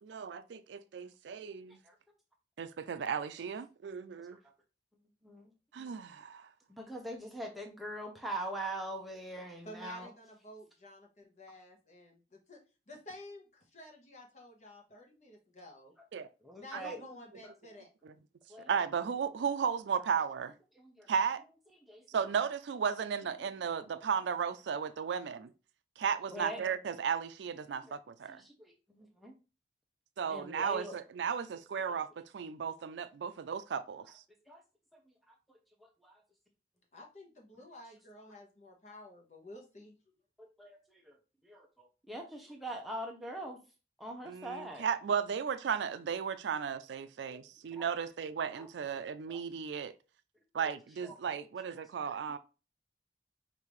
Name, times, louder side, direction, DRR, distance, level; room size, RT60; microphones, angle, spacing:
voice 1, 0.0-1.8 2.6-4.4 5.7-6.5 16.1-16.3 16.7-16.9 18.0-18.1 18.7-20.5 21.1-21.4 22.1-25.5 26.0-28.4 30.2-32.1 32.3-34.0 44.3-49.9 50.5-52.4, right 7 dB, 80° right, 0.4 m, -35 dB
voice 2, 5.2-5.5 6.7-10.1 16.4-17.0 17.4-17.5 18.5-18.7 20.8-21.1 21.9-22.0 26.3-26.6 27.8-27.9 28.3-29.4 30.3-31.0 31.8-31.9 34.5-34.6 34.9-35.0 35.3-35.4 35.8-36.2 40.4-41.2 41.4-43.6 44.0-44.9 47.3-47.4 47.7-47.9 48.5-48.7 49.3-49.4 51.0-51.5 51.7-52.2, right 1 dB, ahead, 0.8 m, -43 dB
voice 3, 9.6-12.6 12.9-15.9 16.6-17.9 36.9-40.0, left 1 dB, 40° left, 1.0 m, -51 dB
5.2 x 2.7 x 3.1 m
head